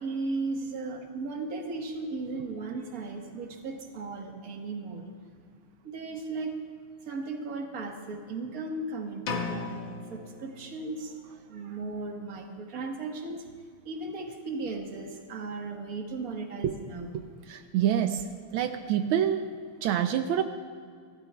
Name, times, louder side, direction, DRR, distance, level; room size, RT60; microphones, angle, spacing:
voice 1, 0.0-5.0 5.8-6.5 7.1-9.8 10.1-11.1 11.5-13.4 13.8-17.1, right 3 dB, 45° right, 2 dB, 1.7 m, -36 dB
sound 1, 9.3-11.1, left 5 dB, 70° left, 1.9 m, -36 dB
voice 2, 17.5-18.3 18.5-19.5 19.8-20.4, right 10 dB, 85° right, 7 dB, 1.4 m, -26 dB
28.5 x 13.0 x 2.3 m, 2.2 s
omnidirectional pair, 2.3 m